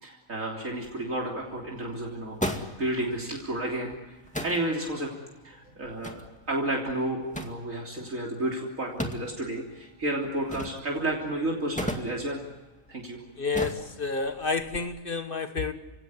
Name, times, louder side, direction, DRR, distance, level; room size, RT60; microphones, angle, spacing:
voice 1, 0.0-3.9 4.4-5.1 5.4-6.2 6.5-12.4 12.9-13.2, right 1 dB, 70° right, -2 dB, 3.8 m, -31 dB
sound 1, 0.8-14.8, equal, 5° left, 2.1 m, -40 dB
voice 2, 13.4-15.7, left 4 dB, 40° left, 9 dB, 1.6 m, -30 dB
30.0 x 17.5 x 9.8 m, 1.1 s
omnidirectional pair, 1.4 m